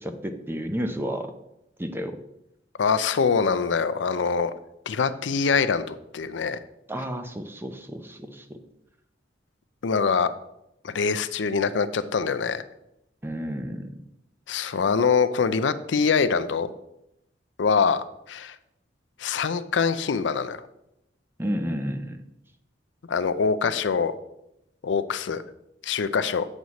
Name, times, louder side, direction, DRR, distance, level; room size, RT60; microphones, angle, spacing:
voice 1, 0.0-1.3 1.8-2.2 6.9-8.6 13.2-14.1 21.4-22.2, equal, 15° right, 7 dB, 0.6 m, -31 dB
voice 2, 2.8-4.5 4.9-6.6 9.8-10.3 10.8-12.6 14.5-16.7 17.6-18.5 19.2-20.6 23.1-24.2 24.8-25.4 25.8-26.5, left 5 dB, 85° left, 13 dB, 0.5 m, -24 dB
7.8 x 6.2 x 4.1 m, 0.84 s
head